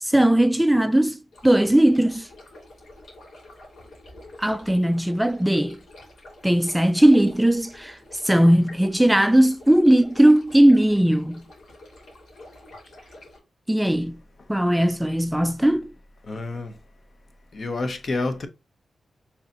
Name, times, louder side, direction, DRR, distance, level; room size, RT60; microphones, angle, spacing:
voice 1, 0.0-2.3 4.4-5.8 6.4-8.0 8.2-11.4 13.7-14.2 14.5-15.9, right 1 dB, 5° right, 0.3 m, -18 dB
sound 1, 1.3-13.4, left 1 dB, 85° left, 2.5 m, -47 dB
voice 2, 16.3-16.7 17.5-18.5, left 2 dB, 50° left, 0.8 m, -28 dB
5.3 x 3.4 x 2.8 m
wide cardioid pair, 115°, 0 cm